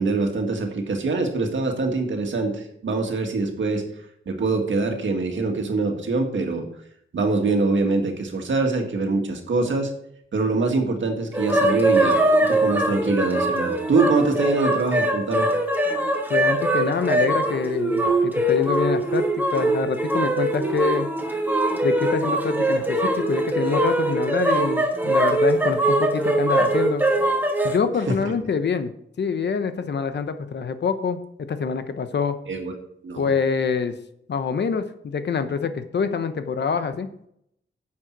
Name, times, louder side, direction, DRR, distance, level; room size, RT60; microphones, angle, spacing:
voice 1, 0.0-3.8 4.3-6.7 7.1-9.9 10.3-15.5 28.1-28.2 32.5-32.7 33.0-33.3, right 3 dB, 70° right, 3 dB, 1.9 m, -24 dB
sound 1, 11.3-27.8, right 1 dB, 10° right, 1.4 m, -22 dB
voice 2, 16.3-21.1 21.8-27.1 27.6-28.9 29.2-31.2 31.5-32.4 33.2-34.0 34.3-37.3, left 5 dB, 60° left, 10 dB, 0.9 m, -26 dB
10.0 x 7.6 x 4.6 m, 0.72 s
wide cardioid pair, 165°, 20 cm